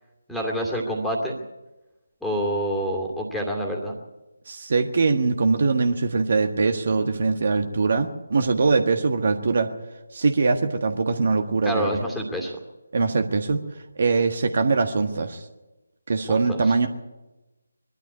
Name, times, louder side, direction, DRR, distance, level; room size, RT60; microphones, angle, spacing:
voice 1, 0.3-1.4 2.2-4.0 11.6-12.6 16.3-16.7, equal, ahead, -1 dB, 2.5 m, -27 dB
voice 2, 4.5-9.7 10.1-12.0 12.9-13.6 14.0-15.5 16.1-16.9, right 4 dB, 45° right, 6 dB, 1.5 m, -22 dB
22.0 x 12.5 x 9.6 m, 1.1 s
figure-of-eight pair, 150°, 0 cm